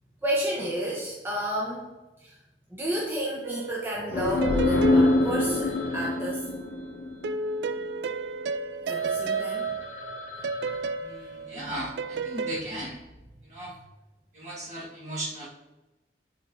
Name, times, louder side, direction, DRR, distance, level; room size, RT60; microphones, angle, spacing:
voice 1, 0.2-1.9 2.2-2.4 2.7-6.5 8.8-9.7 10.6-10.7 11.5-11.7, right 1 dB, 10° right, -4 dB, 0.7 m, -31 dB
sound 1, 3.4-6.3 7.2-12.6, right 3 dB, 75° right, 0.3 m, -32 dB
sound 2, 4.1-7.8, left 2 dB, 85° left, 0.6 m, -25 dB
Telephone, 4.4-8.1 8.6-8.7 8.9-11.8, left 4 dB, 35° left, 1.2 m, -44 dB
voice 2, 11.0-13.0 13.5-13.7 14.3-15.5, right 1 dB, 40° right, -4 dB, 1.5 m, -36 dB
8.6 x 4.1 x 2.7 m, 1.0 s
head